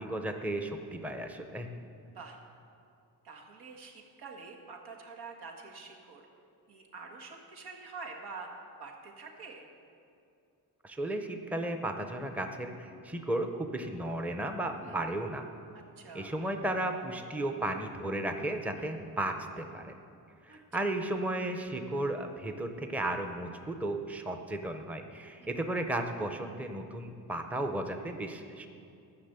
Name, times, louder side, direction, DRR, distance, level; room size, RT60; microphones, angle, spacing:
voice 1, 0.0-1.7 10.8-15.4 16.1-19.9 20.5-28.7, right 1 dB, 5° right, 5 dB, 0.6 m, -34 dB
voice 2, 3.2-6.2 6.7-9.7 14.8-15.0 15.7-16.4 18.8-18.9 20.5-20.9 25.4-25.5, right 4 dB, 85° right, 1 dB, 1.8 m, -47 dB
14.0 x 6.2 x 8.0 m, 2.5 s
wide cardioid pair, 150°, 37 cm